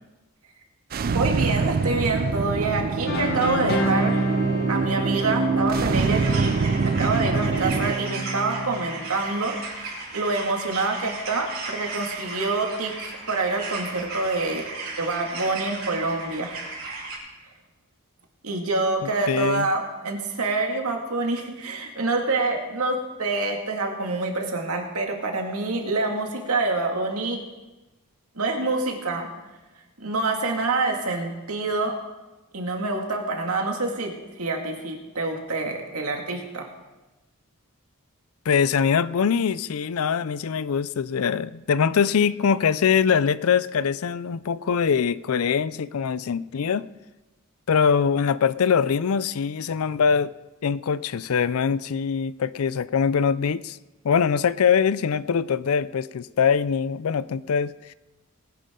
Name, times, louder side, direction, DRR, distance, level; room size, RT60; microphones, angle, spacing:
sound 1, 0.9-7.9, right 4 dB, 40° right, 0.3 m, -25 dB
voice 1, 1.0-4.3 4.7-6.6 6.8-14.7 15.0-16.5 18.4-27.4 28.4-29.3 30.0-32.0 32.5-36.7, right 3 dB, 85° right, 2 dB, 2.1 m, -26 dB
sound 2, 3.1-9.0, right 1 dB, 45° left, 1.6 m, -28 dB
sound 3, 5.9-17.2, right 3 dB, 65° right, 4.4 m, -36 dB
voice 2, 19.0-19.7 38.5-46.9 47.7-50.3 50.6-53.8 54.0-57.7, left 6 dB, 75° left, 18 dB, 0.4 m, -23 dB
20.0 x 10.5 x 3.8 m, 1.1 s
head